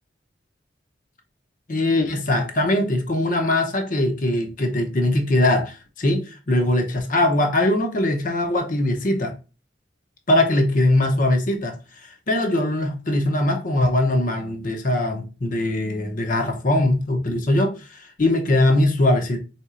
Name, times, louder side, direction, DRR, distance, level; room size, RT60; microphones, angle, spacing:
voice 1, 1.7-9.3 10.3-11.8 12.0-19.4, left 1 dB, 50° left, 0.8 m, -21 dB
4.3 x 3.8 x 2.4 m
head